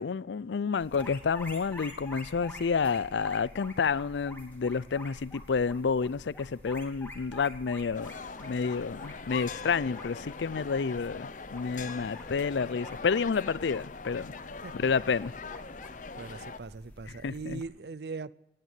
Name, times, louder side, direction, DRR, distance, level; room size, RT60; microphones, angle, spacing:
voice 1, 0.0-8.1 8.4-14.3 14.8-15.3 17.1-17.6, left 5 dB, 85° left, 0.5 m, -30 dB
sound 1, 0.8-17.6, left 1 dB, 10° left, 2.3 m, -48 dB
sound 2, 7.9-16.6, left 4 dB, 45° left, 0.7 m, -42 dB
voice 2, 16.2-18.3, right 4 dB, 65° right, 0.5 m, -40 dB
17.0 x 9.3 x 9.0 m
head